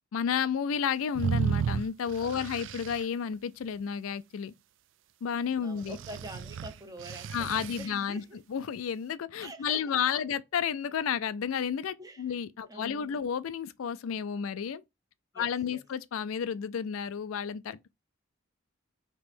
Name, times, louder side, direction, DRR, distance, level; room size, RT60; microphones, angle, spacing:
voice 1, 0.1-4.5 5.2-6.0 7.3-8.2 8.5-14.8 15.4-17.9, left 7 dB, 90° left, 0.4 m, -31 dB
sound 1, 1.1-3.0 5.8-7.9, right 7 dB, 65° right, 0.3 m, -33 dB
voice 2, 2.2-2.5 5.6-8.4 9.4-10.2 12.0-12.4 12.7-13.2 15.3-15.8, right 1 dB, 20° right, 0.6 m, -46 dB
3.4 x 2.9 x 4.3 m
head